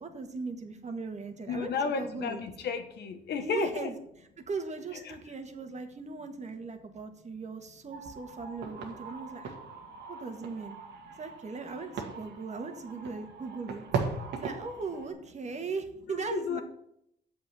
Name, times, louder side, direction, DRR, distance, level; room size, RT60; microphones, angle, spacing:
voice 1, 0.0-2.4 3.4-3.9 4.5-9.5 10.1-10.8 11.2-13.8 14.3-16.6, right 4 dB, 40° right, 5 dB, 1.8 m, -38 dB
voice 2, 1.5-3.9 4.9-5.0 16.1-16.6, left 5 dB, 70° left, 7 dB, 1.4 m, -33 dB
sound 1, 7.9-15.1, right 5 dB, 75° right, 1.8 m, -39 dB
7.5 x 6.0 x 7.6 m, 0.74 s
cardioid pair, 80°, 18 cm